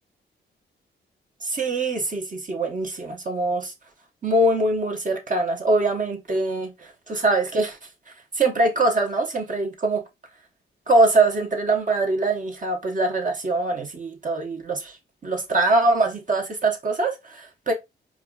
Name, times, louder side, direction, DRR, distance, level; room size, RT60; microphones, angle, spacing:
voice 1, 1.4-3.7 4.2-6.7 7.1-7.8 8.4-10.0 10.9-15.0 15.2-17.7, right 2 dB, 40° right, 1.1 m, -23 dB
4.6 x 2.5 x 2.3 m
cardioid pair, 75°, 21 cm